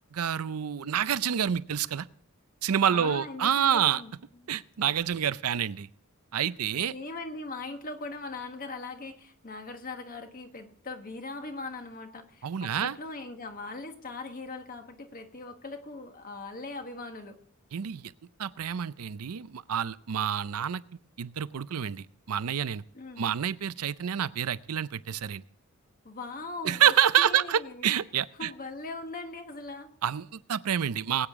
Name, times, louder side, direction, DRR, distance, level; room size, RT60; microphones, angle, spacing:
voice 1, 0.1-2.1 2.6-4.0 4.5-5.9 6.3-6.9 12.4-13.0 17.7-18.1 18.4-20.8 21.2-22.8 23.2-25.4 26.6-28.5 30.0-31.3, right 9 dB, 90° right, 17 dB, 0.5 m, -28 dB
voice 2, 2.9-4.1 4.4-4.5 6.7-17.4 22.9-23.3 26.0-27.9 28.4-29.9, left 3 dB, 40° left, 6 dB, 1.4 m, -40 dB
21.0 x 8.8 x 3.6 m, 0.64 s
head